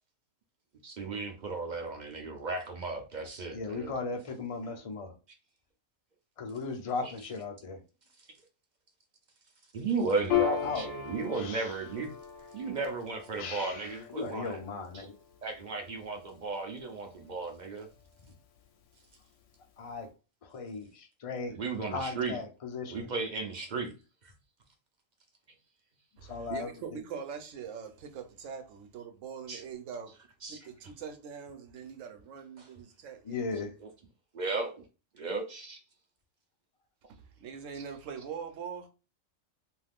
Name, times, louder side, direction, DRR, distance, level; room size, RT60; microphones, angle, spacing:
voice 1, 0.8-3.9 7.0-7.1 9.7-12.1 12.5-14.6 14.9-15.1 15.4-17.9 21.5-22.4 22.9-23.9 24.2-24.3 29.5-29.6 30.4-30.6 32.6-32.7 33.8-33.9 34.3-34.8 35.1-35.8, right 4 dB, 50° right, 0.5 m, -35 dB
voice 2, 3.5-5.1 6.4-7.8 10.6-10.9 11.4-11.6 13.4-13.8 14.1-15.1 19.8-20.1 20.4-21.5 21.9-23.1 26.3-26.7 33.3-33.7, left 4 dB, 50° left, 0.4 m, -37 dB
Piano, 10.3-17.2, left 10 dB, 75° left, 0.9 m, -37 dB
voice 3, 26.2-30.2 30.5-33.7 37.2-38.9, right 6 dB, 75° right, 1.0 m, -43 dB
2.6 x 2.3 x 3.4 m
omnidirectional pair, 1.3 m